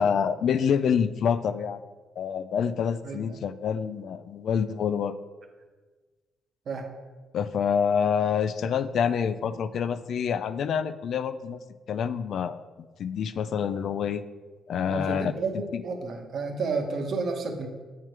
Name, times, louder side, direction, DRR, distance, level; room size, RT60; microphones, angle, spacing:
voice 1, 0.0-1.8 2.2-5.1 7.3-14.2 14.7-15.8, left 7 dB, 65° left, 13 dB, 0.4 m, -27 dB
voice 2, 3.0-3.4 6.7-6.9 14.9-17.7, right 4 dB, 60° right, 4 dB, 1.1 m, -31 dB
7.5 x 4.6 x 4.7 m, 1.4 s
cardioid pair, 90°, 0 cm